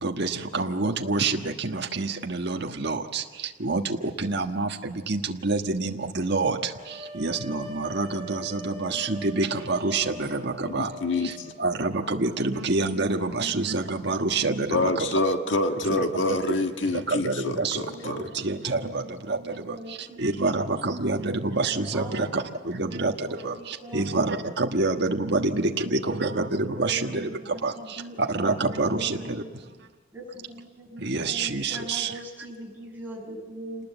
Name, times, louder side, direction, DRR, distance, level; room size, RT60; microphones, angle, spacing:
voice 1, 0.0-3.2 3.6-6.6 7.1-10.9 11.2-11.3 11.6-15.0 15.9-16.0 16.9-17.8 18.0-19.4 19.7-19.8 20.2-27.3 27.6-27.7 28.3-29.4 31.0-32.1, right 3 dB, 60° right, 2 dB, 1.5 m, -27 dB
sound 1, 6.7-12.5, right 1 dB, 35° right, 2.7 m, -42 dB
voice 2, 8.9-9.3 12.1-12.2 12.5-13.7 14.0-14.4 17.9-18.3 18.7-20.8 21.5-24.0 25.3-27.4 27.7-28.3 28.7-29.6 30.1-33.9, right 1 dB, 10° right, -3 dB, 7.0 m, -43 dB
voice 3, 10.6-11.5 14.7-18.4, left 2 dB, 70° left, 5 dB, 1.6 m, -27 dB
28.0 x 20.0 x 8.1 m, 1.3 s
head